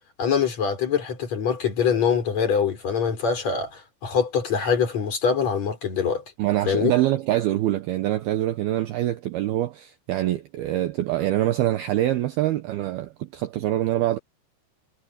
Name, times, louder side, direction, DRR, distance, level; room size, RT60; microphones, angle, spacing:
voice 1, 0.2-6.2 6.7-6.9, left 6 dB, 35° left, 5.5 m, -24 dB
voice 2, 6.4-14.2, right 14 dB, 75° right, 2.4 m, -24 dB
omnidirectional pair, 5.5 m